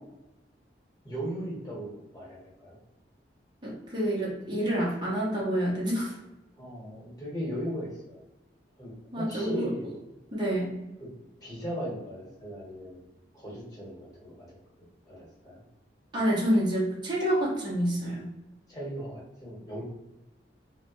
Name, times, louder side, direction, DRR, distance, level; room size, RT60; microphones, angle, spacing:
voice 1, 1.0-2.8 6.6-8.2 8.8-9.9 11.0-11.1 11.4-13.0 13.3-15.6 18.7-19.8, equal, 20° left, -5 dB, 1.2 m, -38 dB
voice 2, 3.6-6.1 9.1-10.0 10.3-10.7 16.1-18.3, equal, 25° right, -5 dB, 0.7 m, -28 dB
3.1 x 2.1 x 2.9 m, 0.96 s
head